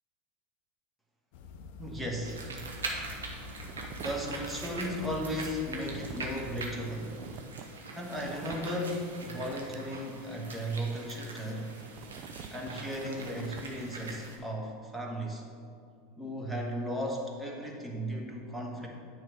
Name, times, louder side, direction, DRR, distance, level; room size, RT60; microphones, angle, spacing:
sound 1, 1.3-6.9, left 3 dB, 65° left, 0.5 m, -46 dB
voice 1, 1.8-2.5 4.0-7.2 7.9-11.7 12.5-15.4 16.2-18.9, equal, 10° right, 0 dB, 1.3 m, -36 dB
sound 2, 2.2-14.4, right 3 dB, 85° right, 1.0 m, -42 dB
sound 3, 3.3-9.8 10.2-10.3 11.1-13.7, right 8 dB, 50° right, 0.4 m, -49 dB
9.3 x 3.1 x 6.3 m, 2.4 s
hypercardioid pair, 85°, 0 cm